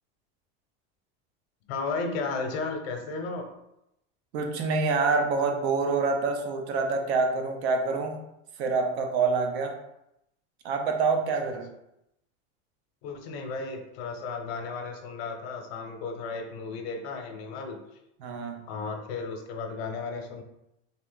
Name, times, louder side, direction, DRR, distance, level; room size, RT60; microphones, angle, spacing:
voice 1, 1.7-3.5 11.4-11.5 13.0-17.8 18.7-20.4, left 4 dB, 70° left, 4 dB, 0.8 m, -34 dB
voice 2, 4.3-8.2 8.6-9.8 10.6-11.7 18.2-18.6, right 4 dB, 85° right, 3 dB, 0.8 m, -26 dB
3.4 x 2.4 x 3.9 m, 0.84 s
supercardioid pair, 150°, 32 cm